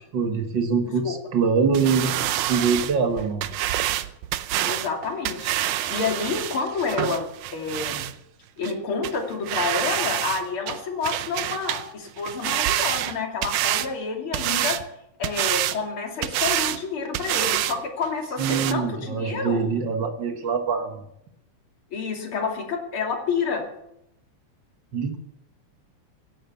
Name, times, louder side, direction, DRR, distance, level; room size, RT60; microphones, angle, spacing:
voice 1, 0.1-3.5 18.4-21.0 24.9-25.2, right 5 dB, 55° right, 6 dB, 1.4 m, -24 dB
sound 1, 1.7-8.1 8.6-8.7 9.0-9.2 9.5-10.4 10.7-11.9 12.2-13.9 14.3-14.8 15.2-15.8 16.2-16.8 17.1-17.8 18.0-18.1 18.4-18.7, right 13 dB, 90° right, 2.3 m, -27 dB
voice 2, 4.6-8.1 8.6-14.8 15.2-19.6 21.9-23.6, left 5 dB, 45° left, 1 dB, 3.5 m, -29 dB
17.5 x 11.0 x 7.0 m, 0.79 s
omnidirectional pair, 3.4 m